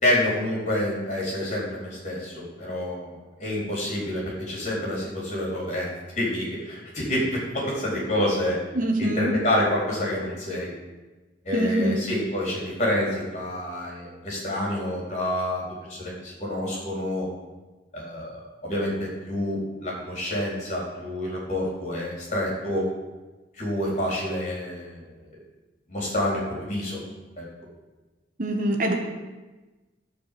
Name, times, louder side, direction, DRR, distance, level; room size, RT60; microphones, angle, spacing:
voice 1, 0.0-5.9 6.2-8.6 9.0-10.7 11.4-15.6 15.9-17.3 17.9-22.9 23.6-25.0 25.9-27.0 27.4-27.5, left 1 dB, 40° left, -4 dB, 3.9 m, -28 dB
voice 2, 8.7-9.3 11.5-12.1 28.4-28.9, right 1 dB, 45° right, 2 dB, 1.2 m, -24 dB
12.5 x 4.8 x 7.6 m, 1.2 s
head